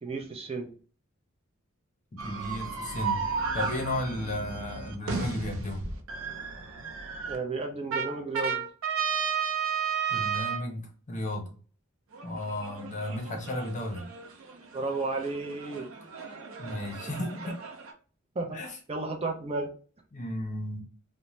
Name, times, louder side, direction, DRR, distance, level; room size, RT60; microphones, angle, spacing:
voice 1, 0.0-0.7 7.3-8.6 14.7-15.9 16.8-16.9 18.4-18.6 18.9-19.7, right 3 dB, 30° right, 3 dB, 0.4 m, -33 dB
voice 2, 2.1-3.2 3.5-5.9 10.1-11.5 12.2-14.1 16.6-17.6 18.5-18.7 20.1-20.8, left 1 dB, 35° left, 2 dB, 0.7 m, -34 dB
sound 1, 2.2-7.4 7.9-10.7 12.1-17.9, right 6 dB, 75° right, 0.5 m, -34 dB
2.6 x 2.1 x 3.0 m, 0.40 s
head